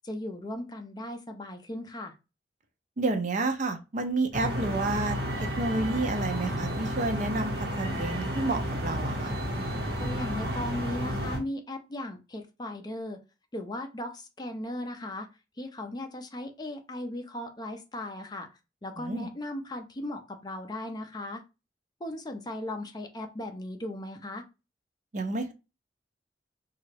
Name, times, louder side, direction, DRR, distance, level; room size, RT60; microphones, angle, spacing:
voice 1, 0.0-2.1 10.0-13.2 13.5-15.3 15.6-18.5 18.8-21.4 22.0-24.4, left 1 dB, 25° left, 5 dB, 0.5 m, -37 dB
voice 2, 3.0-9.3 19.0-19.3 25.1-25.5, right 2 dB, 45° right, 6 dB, 0.5 m, -30 dB
sound 1, 4.3-11.4, equal, 60° right, 1.1 m, -32 dB
3.0 x 2.4 x 3.2 m, 0.27 s
head